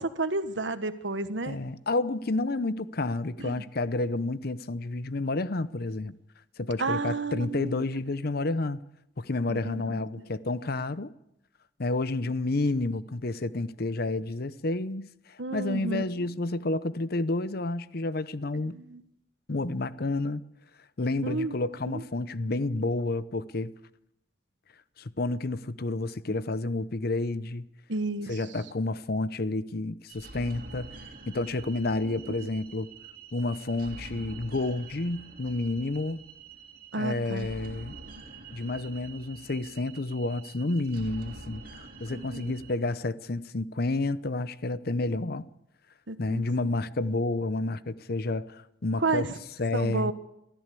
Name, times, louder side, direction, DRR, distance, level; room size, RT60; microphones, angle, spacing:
voice 1, 0.0-1.6 3.4-3.6 6.8-7.8 9.5-9.9 15.4-16.3 18.7-19.0 21.2-21.6 21.9-22.0 27.9-28.4 32.0-32.2 36.9-37.5 42.1-42.6 46.1-46.4 49.0-49.3 49.7-50.1, right 3 dB, 90° right, 1.4 m, -31 dB
voice 2, 1.5-6.2 6.6-8.8 9.2-11.1 11.8-18.8 19.5-20.4 21.0-23.7 25.0-27.7 28.3-30.9 31.3-32.9 33.3-36.2 37.0-38.0 38.5-45.5 46.2-49.3 49.6-50.1, left 2 dB, 55° left, 0.8 m, -30 dB
sound 1, 30.1-42.7, right 3 dB, 50° right, 3.2 m, -46 dB
23.5 x 14.0 x 8.4 m
head